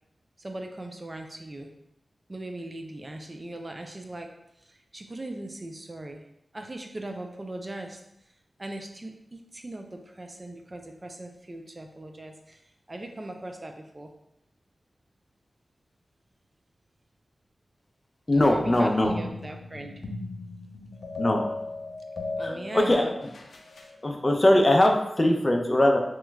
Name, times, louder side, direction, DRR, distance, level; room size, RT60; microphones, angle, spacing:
voice 1, 0.4-1.7 2.3-4.3 4.9-6.2 6.5-8.0 8.6-12.6 12.9-14.1 18.3-19.9 22.4-23.2, right 1 dB, 40° right, 4 dB, 0.4 m, -39 dB
sound 1, 18.3-24.0, left 2 dB, 85° left, 0.4 m, -37 dB
voice 2, 18.3-19.1 21.2-21.4 22.4-23.0 24.0-26.0, left 1 dB, 35° left, 1 dB, 0.5 m, -21 dB
3.0 x 2.3 x 3.3 m, 0.81 s
cardioid pair, 50°, 0 cm